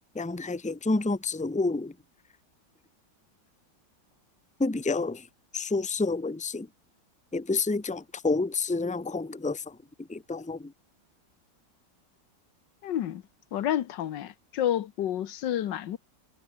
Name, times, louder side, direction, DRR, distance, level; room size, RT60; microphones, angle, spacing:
voice 1, 0.1-1.9 4.6-5.2 5.5-6.7 7.3-9.6 10.1-10.7, left 3 dB, 5° left, 0.9 m, -29 dB
voice 2, 12.8-13.2 13.5-16.0, left 11 dB, 85° left, 1.7 m, -29 dB
omnidirectional pair, 1.9 m